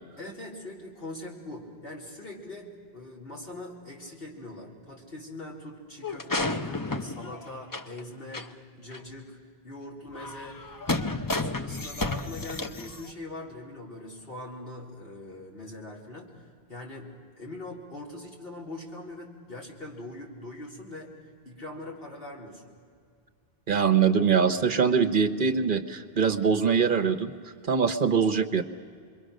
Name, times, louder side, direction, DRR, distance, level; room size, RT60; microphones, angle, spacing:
voice 1, 0.2-9.4 9.6-10.8 11.0-21.1 21.5-22.7, left 1 dB, 65° left, -3 dB, 3.8 m, -42 dB
sound 1, 6.0-8.0 8.3-8.5 8.9-9.0 10.1-13.1, left 2 dB, 25° left, 0.7 m, -32 dB
voice 2, 23.7-27.3 27.7-28.6, right 6 dB, 55° right, 10 dB, 1.0 m, -23 dB
27.0 x 22.5 x 6.4 m, 2.1 s
omnidirectional pair, 1.1 m